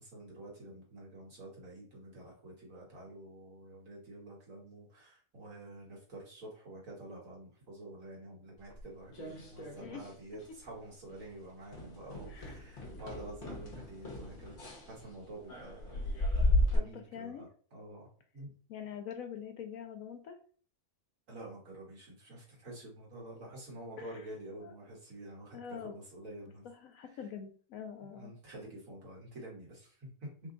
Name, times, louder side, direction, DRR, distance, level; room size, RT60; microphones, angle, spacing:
voice 1, 0.0-16.0 16.6-18.1 18.3-18.5 21.3-26.7 27.1-27.2 28.0-30.3, right 1 dB, 60° right, -4 dB, 1.9 m, -48 dB
sound 1, 8.7-10.2 10.4-10.8 11.1-11.3 11.7-16.8, left 1 dB, 45° left, 0.9 m, -34 dB
voice 2, 16.7-17.4 18.7-20.4 24.0-24.2 24.6-24.7 25.5-25.9 26.4-28.3, left 8 dB, 75° left, 6 dB, 1.0 m, -45 dB
3.5 x 2.3 x 3.7 m, 0.43 s
omnidirectional pair, 1.6 m